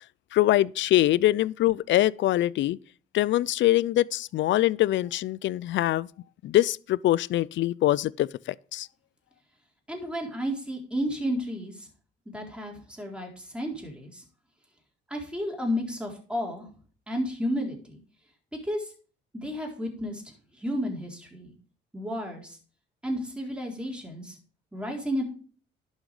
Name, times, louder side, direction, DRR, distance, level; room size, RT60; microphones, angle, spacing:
voice 1, 0.3-2.8 3.1-6.1 6.4-8.9, left 14 dB, 70° left, 0.5 m, -23 dB
voice 2, 9.9-11.9 12.3-14.2 15.1-16.6 17.1-18.0 18.6-18.9 19.3-20.2 20.6-21.5 21.9-22.6 23.0-24.4 24.7-25.2, equal, 5° right, 3.9 m, -32 dB
11.5 x 6.3 x 4.9 m
cardioid pair, 90°, 20 cm